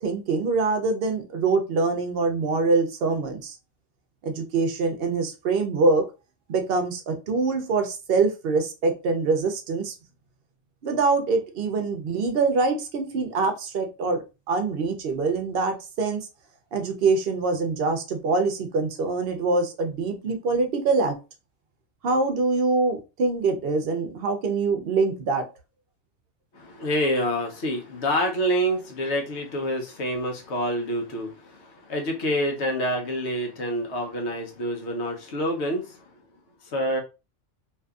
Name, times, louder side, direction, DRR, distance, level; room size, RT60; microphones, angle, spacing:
voice 1, 0.0-3.6 4.2-6.0 6.5-9.9 10.8-16.3 16.7-21.1 22.0-25.4, right 3 dB, 60° right, 6 dB, 0.7 m, -24 dB
voice 2, 26.5-36.0 36.7-37.0, equal, 70° left, 2 dB, 1.0 m, -27 dB
2.7 x 2.5 x 2.3 m, 0.29 s
omnidirectional pair, 1.2 m